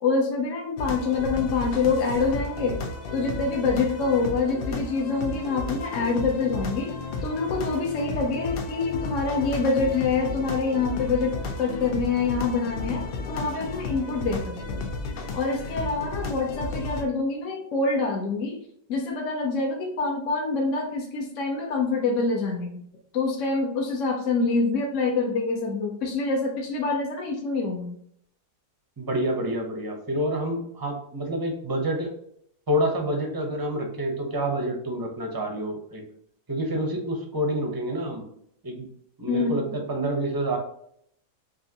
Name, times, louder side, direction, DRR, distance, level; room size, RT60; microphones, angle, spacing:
voice 1, 0.0-2.8 3.1-6.9 7.2-14.8 15.3-18.6 18.9-22.8 23.1-28.0 39.3-39.7, left 4 dB, 60° left, 0 dB, 0.9 m, -26 dB
sound 1, 0.8-17.0, left 3 dB, 85° left, 0.5 m, -33 dB
voice 2, 29.0-32.1 32.7-36.0 36.5-38.2 38.6-38.9 39.2-40.6, right 1 dB, 25° right, 2 dB, 0.4 m, -28 dB
5.4 x 2.6 x 2.8 m, 0.69 s
omnidirectional pair, 1.7 m